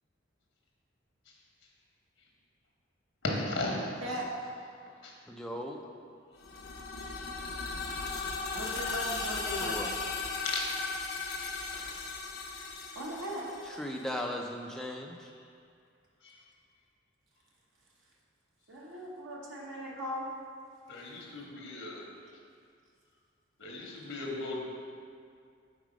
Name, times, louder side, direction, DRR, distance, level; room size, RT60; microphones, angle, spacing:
voice 1, 3.2-3.9 5.0-5.1 7.1-7.2 10.4-10.7 16.2-16.3 20.9-22.1 23.6-24.7, left 2 dB, 85° left, -2 dB, 1.0 m, -36 dB
voice 2, 4.0-4.5 8.5-9.8 12.9-13.4 18.7-20.3, equal, 85° right, -4 dB, 0.9 m, -38 dB
voice 3, 5.3-5.8 9.6-9.9 13.6-15.3, left 1 dB, 5° left, 1 dB, 0.3 m, -37 dB
sound 1, 6.4-14.2, left 4 dB, 50° left, 0.6 m, -37 dB
4.8 x 4.0 x 5.0 m, 2.3 s
head